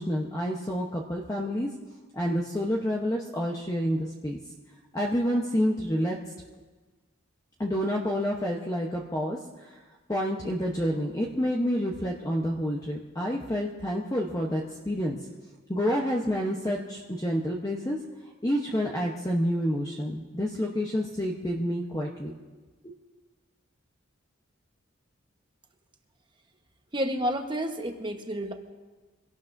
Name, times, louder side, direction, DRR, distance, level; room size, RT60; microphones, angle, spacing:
voice 1, 0.0-1.7 2.1-4.4 4.9-6.2 7.6-9.8 10.1-15.2 15.7-18.0 18.4-22.3 22.8-22.9, equal, 15° left, -1 dB, 0.9 m, -28 dB
voice 2, 26.9-28.5, equal, 20° right, 4 dB, 1.1 m, -30 dB
24.5 x 17.5 x 2.6 m, 1.3 s
head